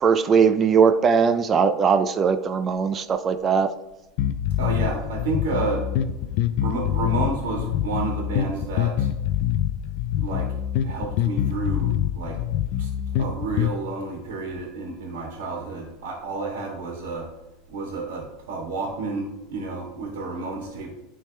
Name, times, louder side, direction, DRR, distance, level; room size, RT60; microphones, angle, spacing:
voice 1, 0.0-3.7, right 6 dB, 30° right, 9 dB, 0.4 m, -20 dB
sound 1, 4.2-13.7, left 11 dB, 60° left, 0.4 m, -25 dB
voice 2, 4.6-5.8 6.6-9.1 10.1-10.5 10.8-12.4 12.8-12.9 13.2-17.3 17.7-20.9, right 3 dB, 85° right, -1 dB, 1.6 m, -30 dB
10.0 x 3.5 x 3.3 m, 0.97 s
supercardioid pair, 125°, 0 cm